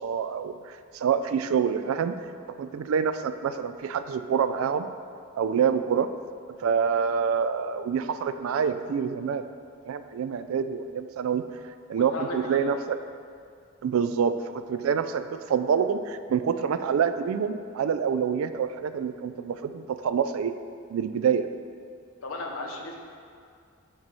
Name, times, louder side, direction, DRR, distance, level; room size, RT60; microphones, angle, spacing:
voice 1, 0.0-2.2 2.5-4.9 5.4-6.1 6.6-9.5 9.9-11.5 11.9-13.0 13.8-20.6 20.9-21.5, right 7 dB, 80° right, 11 dB, 0.3 m, -26 dB
voice 2, 11.9-12.6 22.2-23.0, left 2 dB, 80° left, 1 dB, 0.8 m, -35 dB
7.5 x 3.0 x 5.5 m, 2.3 s
head